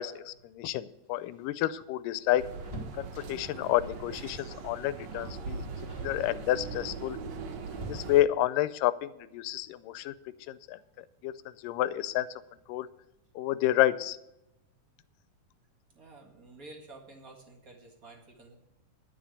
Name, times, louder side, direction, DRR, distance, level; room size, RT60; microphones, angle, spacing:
voice 1, 0.0-2.4 3.0-5.6 6.0-7.2 7.8-10.1 10.5-10.8 11.2-11.3 11.6-12.3 12.7-12.9 13.4-14.2, left 14 dB, 80° left, 15 dB, 2.1 m, -29 dB
sound 1, 1.0-3.7 4.5-4.8 5.1-5.4 5.8-6.2 7.0-8.5 10.2-10.3 10.7-10.8 12.0-12.4 12.7-12.8 13.1-13.3, right 1 dB, 10° right, 2.0 m, -46 dB
sound 2, 2.4-8.2, right 4 dB, 65° right, 1.9 m, -40 dB
voice 2, 15.9-18.5, right 2 dB, 35° right, 0 dB, 1.6 m, -51 dB
11.0 x 6.4 x 8.1 m, 0.87 s
omnidirectional pair, 3.9 m